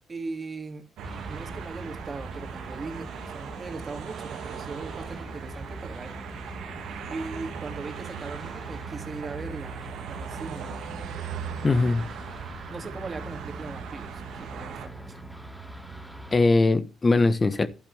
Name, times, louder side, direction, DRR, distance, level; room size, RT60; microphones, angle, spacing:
voice 1, 0.1-0.9 1.3-6.1 7.0-9.8 10.1-10.7 12.7-15.2, right 3 dB, 30° right, 2.6 m, -39 dB
sound 1, 1.0-16.4, right 1 dB, 5° right, 1.9 m, -42 dB
sound 2, 1.0-14.9, right 7 dB, 80° right, 2.1 m, -39 dB
voice 2, 11.6-12.0 16.3-17.7, left 3 dB, 30° left, 1.1 m, -21 dB
11.0 x 9.9 x 3.5 m
cardioid pair, 90°, 0 cm